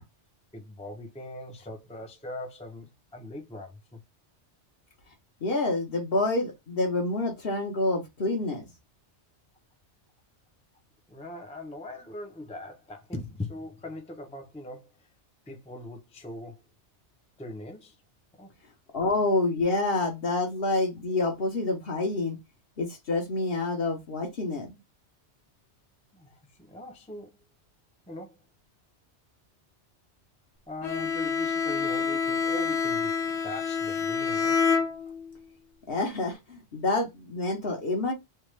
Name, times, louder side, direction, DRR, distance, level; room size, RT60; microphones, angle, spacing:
voice 1, 0.5-4.0 11.1-15.1 15.5-16.6 17.4-18.0 18.4-18.5 26.1-27.3 28.1-28.4 30.7-34.6, left 1 dB, 5° left, 0.6 m, -41 dB
voice 2, 5.4-8.7 18.9-22.4 22.8-24.8 35.9-38.1, left 2 dB, 55° left, 1.3 m, -28 dB
Bowed string instrument, 30.8-35.4, left 5 dB, 75° left, 0.9 m, -27 dB
3.4 x 2.3 x 3.1 m
omnidirectional pair, 1.2 m